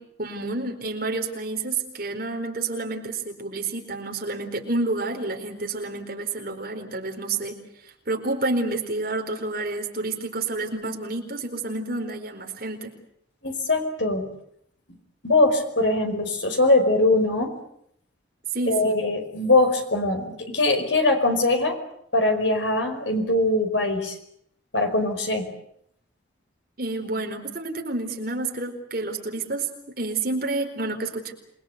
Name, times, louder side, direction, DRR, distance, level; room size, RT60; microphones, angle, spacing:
voice 1, 0.0-12.9 18.5-19.0 26.8-29.7 30.0-31.3, right 2 dB, 50° right, 3 dB, 4.4 m, -29 dB
voice 2, 13.4-14.3 15.2-17.5 18.7-21.8 22.1-24.2 24.7-25.5, left 2 dB, 70° left, 6 dB, 5.2 m, -22 dB
27.5 x 22.0 x 8.2 m, 0.72 s
head